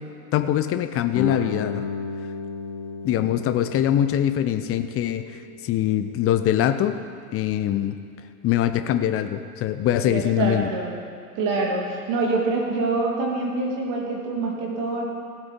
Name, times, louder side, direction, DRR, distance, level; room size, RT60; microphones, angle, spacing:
voice 1, 0.3-1.9 3.0-7.0 7.3-8.0 8.4-10.7, left 11 dB, 30° left, 10 dB, 0.7 m, -23 dB
Guitar, 1.1-6.5, left 5 dB, 55° left, 1.7 m, -34 dB
voice 2, 10.0-10.9 11.4-15.1, right 3 dB, 45° right, -1 dB, 2.8 m, -25 dB
16.0 x 8.3 x 5.3 m, 2.2 s
figure-of-eight pair, 75°, 45 cm